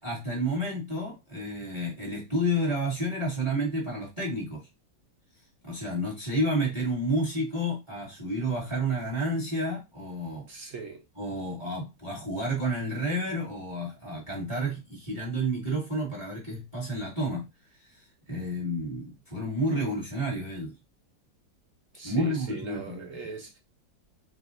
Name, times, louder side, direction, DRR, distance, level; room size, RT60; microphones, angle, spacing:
voice 1, 0.0-4.7 5.6-10.5 11.1-17.4 17.9-20.7 22.0-23.1, right 1 dB, 15° right, 1.6 m, -30 dB
voice 2, 10.5-11.0 21.9-23.6, right 5 dB, 80° right, 0.7 m, -40 dB
4.8 x 2.6 x 2.5 m
omnidirectional pair, 2.1 m